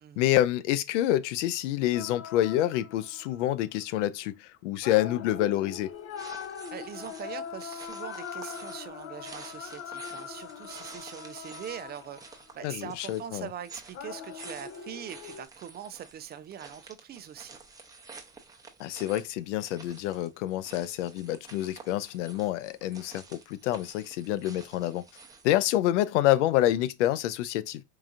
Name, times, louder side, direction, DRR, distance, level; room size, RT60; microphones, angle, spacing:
voice 1, 0.2-5.9 12.6-13.5 18.8-25.1 25.4-27.8, left 13 dB, 90° left, 0.5 m, -27 dB
sound 1, 1.9-3.6 4.8-12.7 13.9-15.5, left 7 dB, 40° left, 0.6 m, -41 dB
sound 2, 5.9-25.6, right 4 dB, 10° right, 0.8 m, -50 dB
voice 2, 6.7-17.6, right 9 dB, 30° right, 0.4 m, -42 dB
4.6 x 2.8 x 2.5 m
supercardioid pair, 100°, 35 cm